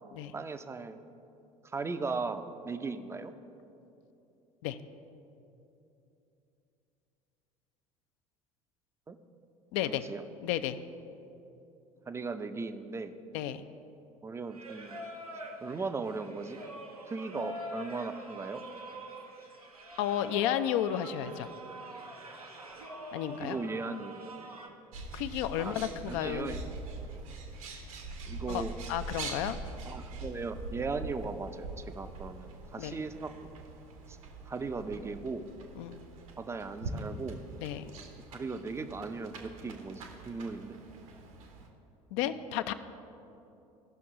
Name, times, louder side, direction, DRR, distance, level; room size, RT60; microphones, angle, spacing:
voice 1, 0.3-1.0 1.6-3.3 9.1-9.2 9.8-10.2 12.1-13.1 14.2-15.0 15.6-16.6 17.1-18.7 23.4-24.3 25.6-25.7 26.1-26.6 28.3-28.7 29.8-33.5 34.1-34.2 34.5-35.4 36.4-37.4 38.3-40.8 42.2-42.5, right 4 dB, 15° right, 9 dB, 0.5 m, -37 dB
voice 2, 9.7-10.0 10.4-10.8 13.3-13.6 20.0-21.5 23.1-23.6 25.1-26.6 28.5-29.6 32.8-33.0 35.8-36.0 37.6-37.8 42.1-42.7, left 11 dB, 55° left, 11 dB, 0.5 m, -32 dB
Singing, 14.5-24.7, equal, 90° right, 0.8 m, -45 dB
Bird, 24.9-41.7, right 3 dB, 70° right, 1.1 m, -43 dB
15.5 x 5.9 x 3.7 m, 2.9 s
figure-of-eight pair, 65°, 19 cm